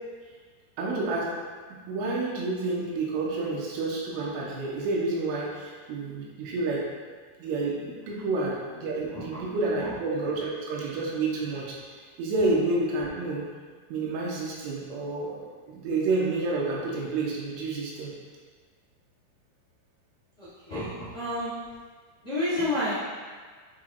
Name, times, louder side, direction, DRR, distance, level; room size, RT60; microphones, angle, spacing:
voice 1, 0.8-1.3 1.9-6.8 7.4-11.7 12.2-13.5 13.9-15.4 15.7-18.1, right 3 dB, 80° right, -4 dB, 3.3 m, -29 dB
voice 2, 20.4-21.5 22.2-23.0, left 1 dB, 70° left, -12 dB, 0.9 m, -29 dB
11.5 x 4.6 x 2.4 m, 1.5 s
omnidirectional pair, 5.8 m